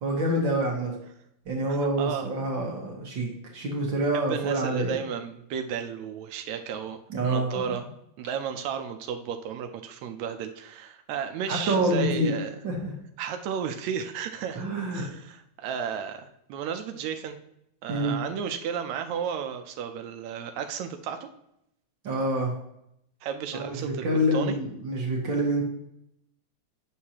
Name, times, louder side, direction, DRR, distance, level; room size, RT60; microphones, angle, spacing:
voice 1, 0.0-0.9 1.5-5.0 7.1-7.6 11.5-12.3 12.6-12.9 14.5-15.0 17.9-18.1 22.0-22.6 23.5-25.6, right 1 dB, 50° right, 0 dB, 1.5 m, -27 dB
voice 2, 2.0-2.3 4.1-7.8 8.2-12.5 13.2-14.7 14.9-17.4 17.8-21.3 23.2-24.1 24.3-24.5, right 7 dB, 75° right, 6 dB, 1.8 m, -33 dB
9.2 x 6.4 x 2.9 m, 0.77 s
omnidirectional pair, 3.4 m